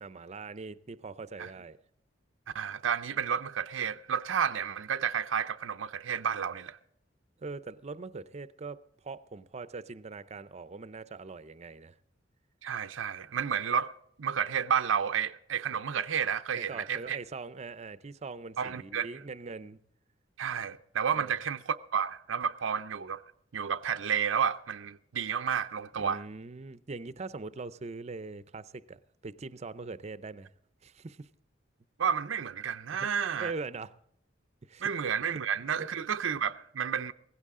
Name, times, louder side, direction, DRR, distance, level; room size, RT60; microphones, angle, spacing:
voice 1, 0.0-1.8 7.4-11.9 16.6-19.8 21.1-21.3 26.0-30.5 30.8-31.3 32.9-33.9 34.6-34.9 35.8-35.9, right 3 dB, 35° right, 0.6 m, -42 dB
voice 2, 2.5-6.8 12.6-13.9 14.2-17.2 18.6-19.1 20.4-23.2 23.5-26.2 32.0-33.5 34.8-37.1, right 7 dB, 85° right, 0.6 m, -31 dB
17.0 x 15.5 x 3.7 m
head